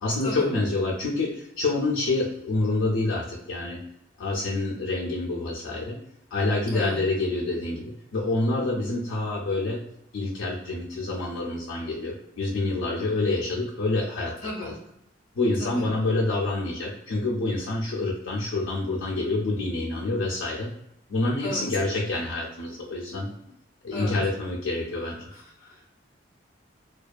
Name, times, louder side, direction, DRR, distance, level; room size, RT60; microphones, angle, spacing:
voice 1, 0.0-3.8 4.2-5.9 6.3-7.8 8.1-9.8 10.1-14.7 15.4-20.7 21.1-23.3 23.8-25.2, left 2 dB, 85° left, -4 dB, 0.4 m, -27 dB
voice 2, 6.7-7.0 14.4-14.8 15.6-15.8 21.4-21.7 23.9-24.2 25.3-25.9, left 2 dB, 45° left, -3 dB, 0.7 m, -35 dB
2.5 x 2.2 x 2.3 m, 0.79 s
head